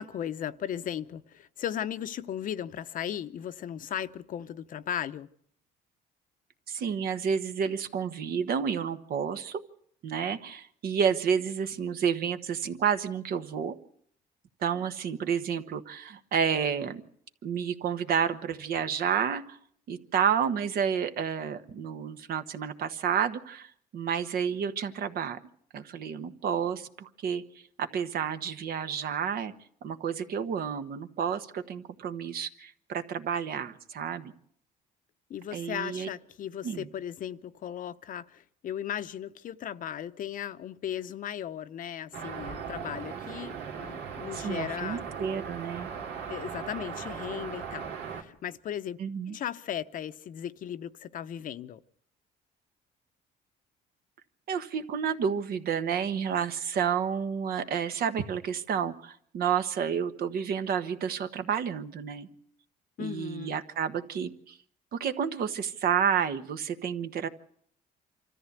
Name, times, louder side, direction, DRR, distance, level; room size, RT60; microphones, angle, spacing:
voice 1, 0.0-5.3 35.3-45.0 46.1-49.0 49.3-51.8 63.0-63.6, left 10 dB, 55° left, 0.8 m, -36 dB
voice 2, 6.7-9.6 10.0-13.7 14.6-17.0 17.4-19.6 19.9-25.4 25.7-27.4 27.8-29.5 29.8-34.3 35.5-36.1 36.6-36.8 44.3-45.9 49.0-49.4 54.5-62.3 63.0-64.6 64.9-67.3, right 7 dB, 60° right, 1.3 m, -30 dB
sound 1, 42.1-48.2, right 6 dB, 80° right, 2.6 m, -38 dB
25.5 x 14.0 x 8.2 m
cardioid pair, 110°, 17 cm